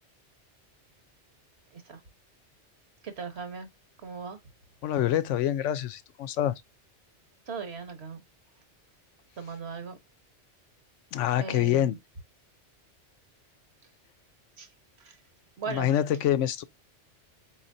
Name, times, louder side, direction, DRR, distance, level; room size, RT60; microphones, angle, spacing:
voice 1, 3.0-3.7 4.0-4.4 7.5-8.2 9.4-10.0 11.4-12.0 14.6-14.7 15.0-15.2 15.6-16.0, right 5 dB, 65° right, 1.3 m, -38 dB
voice 2, 4.8-6.6 11.1-12.0 15.7-16.6, left 11 dB, 90° left, 0.9 m, -26 dB
4.4 x 4.3 x 2.6 m
omnidirectional pair, 1.2 m